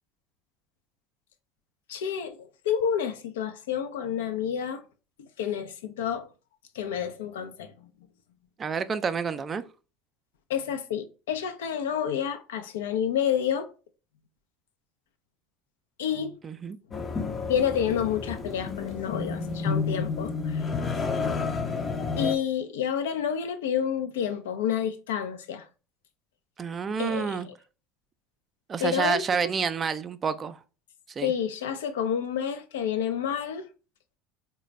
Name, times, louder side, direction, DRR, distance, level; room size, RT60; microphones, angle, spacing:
voice 1, 1.9-4.8 5.2-6.3 6.7-7.9 10.5-13.7 16.0-16.4 17.5-20.7 22.2-25.7 27.0-27.5 28.8-29.2 31.2-33.7, left 8 dB, 75° left, 0.5 m, -29 dB
voice 2, 8.6-9.6 16.4-16.8 26.6-27.5 28.7-30.6 31.2-31.3, right 5 dB, 30° right, 0.4 m, -29 dB
sound 1, 16.9-22.4, left 4 dB, 30° left, 0.6 m, -30 dB
3.9 x 2.2 x 3.1 m
hypercardioid pair, 70°, 0 cm